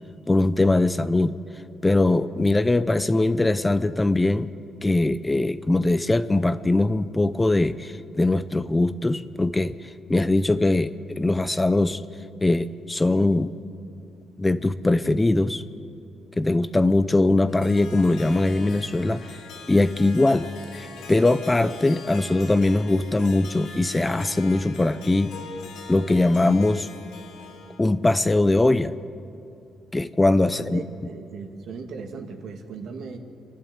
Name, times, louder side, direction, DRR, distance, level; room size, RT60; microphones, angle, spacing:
voice 1, 0.3-1.3 1.8-4.5 4.8-12.0 12.4-13.5 14.4-15.6 16.4-19.3 19.7-25.3 25.9-26.9 27.8-28.9 29.9-30.8, left 2 dB, 15° left, 12 dB, 0.7 m, -21 dB
Harp, 17.3-27.8, left 4 dB, 80° left, 3.0 m, -42 dB
voice 2, 30.4-33.2, right 4 dB, 70° right, 4 dB, 2.1 m, -37 dB
28.5 x 11.5 x 8.1 m, 2.5 s
cardioid pair, 90°, 0 cm